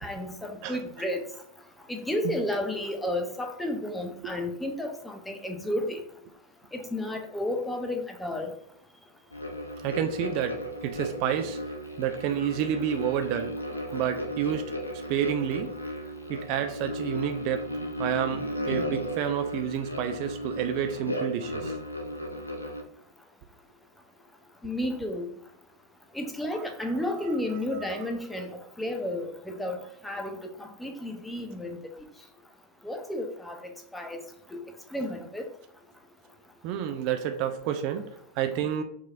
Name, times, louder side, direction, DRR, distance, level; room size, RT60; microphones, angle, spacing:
voice 1, 0.0-1.2 1.9-6.0 6.7-8.5 24.6-25.3 26.1-29.8 30.0-31.9 32.8-34.2 34.5-34.6 34.9-35.5, left 1 dB, 5° left, 4 dB, 0.6 m, -32 dB
sound 1, 9.3-22.8, equal, 85° left, 0.5 m, -35 dB
voice 2, 9.8-11.6 12.0-13.6 13.9-14.7 15.1-15.7 16.3-17.7 18.0-21.7 26.6-26.7 27.7-28.1 36.6-38.1 38.4-38.8, right 9 dB, 45° right, 7 dB, 0.3 m, -29 dB
4.6 x 2.8 x 2.4 m, 0.70 s
figure-of-eight pair, 90°, 0 cm